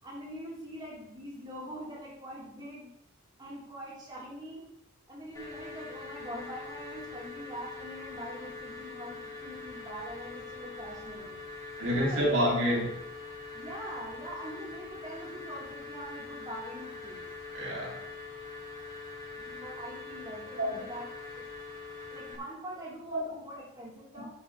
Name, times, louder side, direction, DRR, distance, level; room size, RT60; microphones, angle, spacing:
voice 1, 0.0-2.9 3.4-4.6 5.1-11.4 11.9-12.2 13.5-17.2 19.4-21.1 21.3-21.5 22.1-24.3, equal, 20° right, -7 dB, 4.4 m, -43 dB
sound 1, 5.3-22.3, left 3 dB, 15° left, 3.8 m, -43 dB
voice 2, 11.8-13.0 17.5-18.0 20.5-20.8 23.1-23.2 24.1-24.2, equal, 65° right, -4 dB, 3.4 m, -28 dB
12.0 x 11.0 x 3.5 m, 0.81 s
head